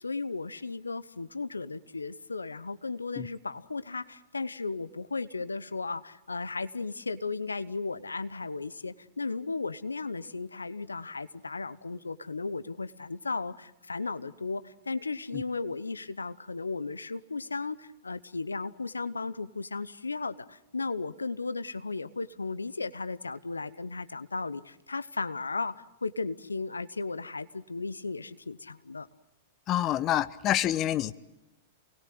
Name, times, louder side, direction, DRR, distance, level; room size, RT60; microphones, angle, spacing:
voice 1, 0.0-29.1, left 3 dB, 90° left, 14 dB, 0.9 m, -35 dB
voice 2, 29.7-31.1, left 12 dB, 35° left, 15 dB, 1.0 m, -27 dB
28.5 x 20.5 x 7.8 m, 0.92 s
figure-of-eight pair, 105°, 0 cm